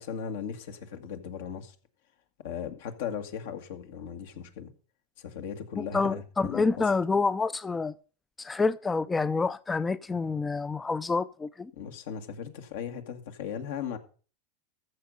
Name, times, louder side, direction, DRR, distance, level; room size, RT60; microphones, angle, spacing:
voice 1, 0.0-1.8 2.4-4.7 5.2-6.9 11.7-14.0, left 7 dB, 75° left, 1.8 m, -37 dB
voice 2, 5.9-7.9 8.4-11.7, left 4 dB, 15° left, 0.4 m, -28 dB
14.0 x 6.6 x 5.4 m
hypercardioid pair, 105°, 0 cm